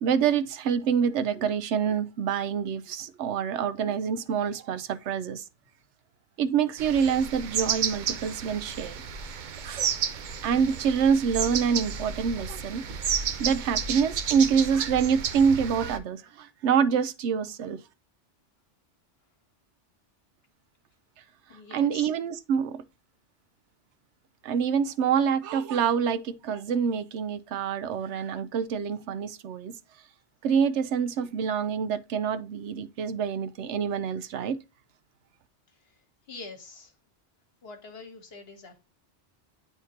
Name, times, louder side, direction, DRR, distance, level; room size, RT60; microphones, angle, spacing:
voice 1, 0.0-5.4 6.4-9.0 9.6-9.9 10.4-12.8 13.4-17.8 21.7-22.8 24.4-29.7 30.4-34.6, right 7 dB, 75° right, 0.9 m, -26 dB
sound 1, 6.8-16.0, right 7 dB, 55° right, 0.6 m, -32 dB
voice 2, 21.5-22.1 36.3-36.9 37.6-38.8, left 3 dB, 60° left, 1.3 m, -44 dB
9.4 x 3.6 x 2.8 m
omnidirectional pair, 1.2 m